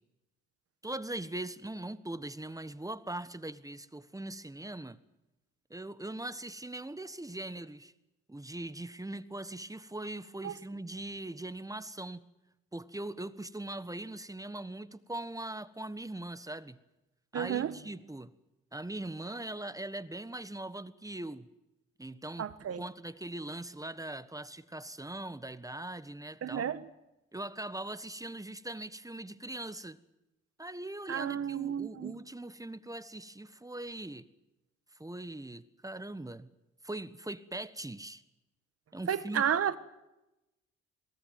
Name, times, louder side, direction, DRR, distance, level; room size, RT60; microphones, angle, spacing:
voice 1, 0.8-5.0 5.7-7.9 8.3-12.2 12.7-16.8 17.3-18.3 18.7-21.5 22.0-22.5 22.8-26.7 27.3-30.0 30.6-34.3 35.0-36.5 36.8-38.2 38.9-39.4, right 1 dB, 10° right, 1.3 m, -41 dB
voice 2, 17.3-17.7 22.4-22.8 26.4-26.9 31.1-32.2 39.1-39.8, right 9 dB, 55° right, 1.6 m, -32 dB
22.5 x 18.0 x 9.3 m
supercardioid pair, 60°, 29 cm